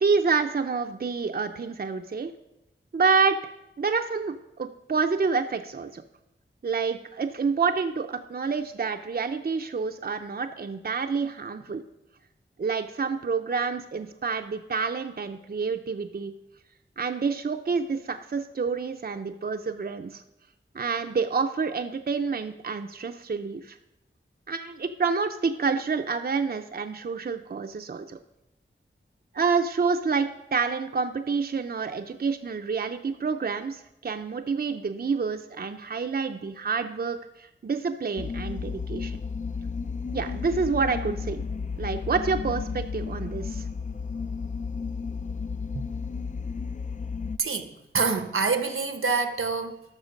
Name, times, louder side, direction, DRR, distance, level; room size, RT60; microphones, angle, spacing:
voice 1, 0.0-2.3 2.9-3.4 3.8-6.0 6.6-11.8 12.6-16.3 17.0-20.2 20.7-23.8 24.5-28.2 29.3-39.2 40.1-41.4 41.8-43.7 45.7-45.9, right 5 dB, 50° right, 6 dB, 0.6 m, -28 dB
sound 1, 38.2-47.4, left 5 dB, 35° left, 0.4 m, -33 dB
voice 2, 47.4-49.8, right 4 dB, 85° right, 8 dB, 1.0 m, -26 dB
13.0 x 6.1 x 5.2 m, 0.88 s
wide cardioid pair, 80°, 21 cm